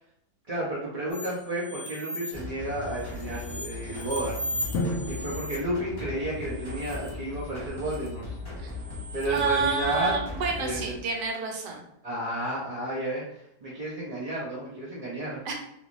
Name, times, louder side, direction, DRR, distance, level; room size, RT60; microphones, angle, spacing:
voice 1, 0.5-4.4 5.1-8.3 9.1-10.1 10.6-10.9 12.0-15.4, right 1 dB, 50° right, -6 dB, 0.4 m, -32 dB
sound 1, 1.1-2.4 2.8-5.5 6.4-7.1 7.4-8.1 8.7-9.7, equal, 55° left, 1.1 m, -38 dB
sound 2, 2.3-11.0, left 3 dB, 35° left, 0.4 m, -38 dB
Drum, 4.7-6.7, left 2 dB, 70° left, 0.7 m, -34 dB
voice 2, 9.2-11.8 15.4-15.6, right 4 dB, 85° right, 1 dB, 1.2 m, -29 dB
3.0 x 2.5 x 3.0 m, 0.76 s
omnidirectional pair, 1.8 m